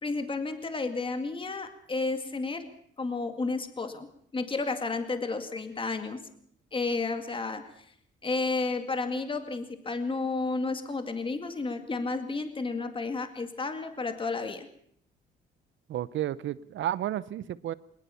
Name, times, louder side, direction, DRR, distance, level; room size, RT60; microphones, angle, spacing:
voice 1, 0.0-2.7 3.0-4.1 4.3-6.2 6.7-7.8 8.2-14.7, left 3 dB, 25° left, 7 dB, 2.2 m, -32 dB
voice 2, 15.9-17.7, right 12 dB, 70° right, 18 dB, 0.8 m, -32 dB
20.5 x 19.5 x 7.0 m, 0.67 s
cardioid pair, 90°, 20 cm